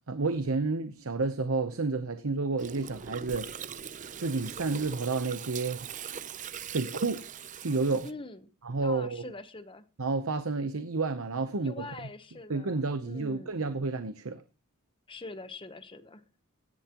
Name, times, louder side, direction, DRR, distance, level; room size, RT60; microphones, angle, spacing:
voice 1, 0.1-3.5 4.2-5.9 6.7-7.2 7.6-8.1 8.6-9.2 10.0-11.9 12.5-14.4, right 3 dB, 70° right, 0.8 m, -30 dB
Gurgling, 2.6-8.1, right 8 dB, 35° right, 0.6 m, -41 dB
voice 2, 8.0-8.4 8.8-9.8 11.6-13.6 15.1-16.2, left 3 dB, 25° left, 1.0 m, -44 dB
16.0 x 10.5 x 3.0 m
head